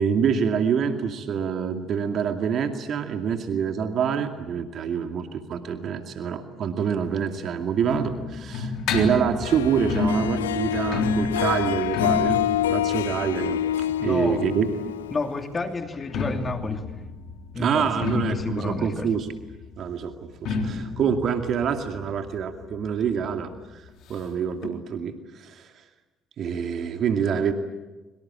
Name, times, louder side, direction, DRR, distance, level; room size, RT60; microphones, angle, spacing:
voice 1, 0.0-12.4 12.7-13.6 14.0-14.7 17.6-19.3 19.8-23.8 24.1-25.7 26.4-27.5, right 7 dB, 55° right, 6 dB, 2.4 m, -26 dB
sound 1, 7.0-14.7 15.9-23.2 23.5-23.6 23.9-24.0 24.6-24.7, left 3 dB, 65° left, 3.7 m, -31 dB
Harp, 9.4-15.7, left 11 dB, 90° left, 0.9 m, -27 dB
voice 2, 14.0-14.5 15.1-17.0 17.5-19.1, left 3 dB, 30° left, 6 dB, 2.7 m, -30 dB
24.5 x 24.0 x 8.9 m, 1.2 s
hypercardioid pair, 60°, 0 cm